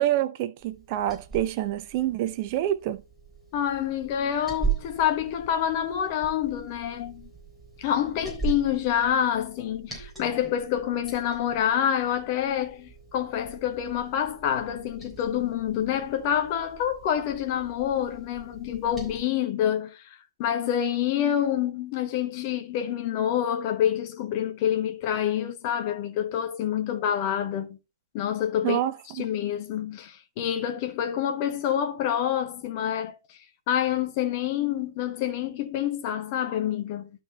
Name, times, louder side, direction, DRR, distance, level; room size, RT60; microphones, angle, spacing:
voice 1, 0.0-3.0 28.6-29.3, right 13 dB, 30° right, 0.8 m, -27 dB
Liquid, 0.6-19.2, right 7 dB, ahead, 3.8 m, -39 dB
voice 2, 3.5-7.3 7.8-27.8 28.1-28.8 29.1-33.4 33.7-37.1, left 10 dB, 30° left, 1.3 m, -27 dB
11.5 x 4.6 x 4.2 m
figure-of-eight pair, 135°, 2 cm